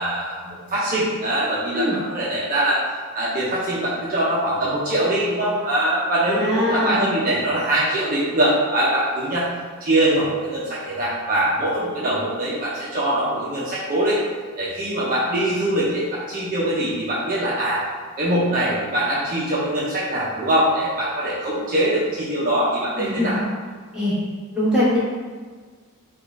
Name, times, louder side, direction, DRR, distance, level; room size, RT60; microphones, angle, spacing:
voice 1, 0.0-2.8 3.1-9.5 9.8-14.2 14.6-17.8 18.2-23.4, right 1 dB, 40° right, -8 dB, 0.6 m, -22 dB
voice 2, 6.3-7.1 23.0-23.4 23.9-24.2 24.5-25.0, left 1 dB, 5° right, -10 dB, 1.0 m, -22 dB
3.6 x 2.4 x 3.1 m, 1.5 s
head